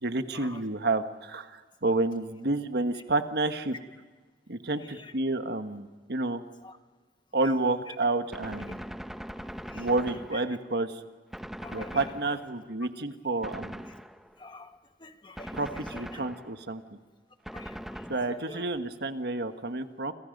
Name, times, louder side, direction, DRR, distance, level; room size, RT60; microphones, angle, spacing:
voice 1, 0.0-3.8 4.5-6.4 7.3-8.8 9.7-11.0 11.7-13.9 15.5-16.8 18.1-20.1, right 2 dB, 65° right, 8 dB, 1.4 m, -30 dB
Gunshot gunfire, 8.3-10.8 11.3-12.7 13.4-14.5 15.4-16.7 17.5-18.7, equal, ahead, 0.7 m, -41 dB
voice 2, 11.6-12.1 14.4-14.7 15.0-15.6 15.9-16.2 17.5-18.6, left 3 dB, 25° left, 7 dB, 1.5 m, -47 dB
30.0 x 26.5 x 5.3 m, 1.4 s
head